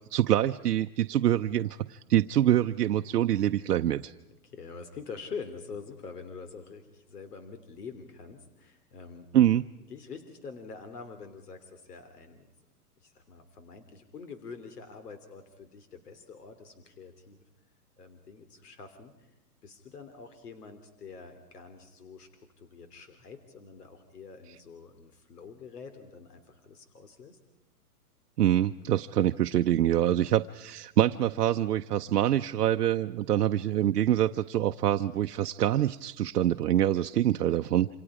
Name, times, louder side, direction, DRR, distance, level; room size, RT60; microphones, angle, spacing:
voice 1, 0.1-4.1 9.3-9.6 28.4-37.9, right 12 dB, 80° right, 7 dB, 0.8 m, -25 dB
voice 2, 4.4-9.3 9.9-12.5 13.0-17.4 18.0-19.3 19.6-22.3 22.6-27.4, left 5 dB, 80° left, 8 dB, 3.1 m, -45 dB
28.0 x 27.0 x 4.9 m, 0.91 s
hypercardioid pair, 180°, 46 cm